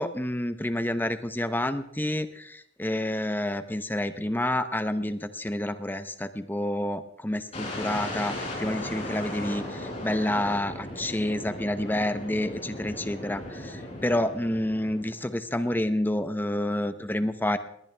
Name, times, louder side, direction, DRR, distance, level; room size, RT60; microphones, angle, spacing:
voice 1, 0.0-17.6, left 1 dB, 10° left, 11 dB, 0.7 m, -29 dB
sound 1, 7.5-15.4, left 1 dB, 35° left, 6.8 m, -37 dB
20.0 x 19.0 x 3.4 m, 0.75 s
head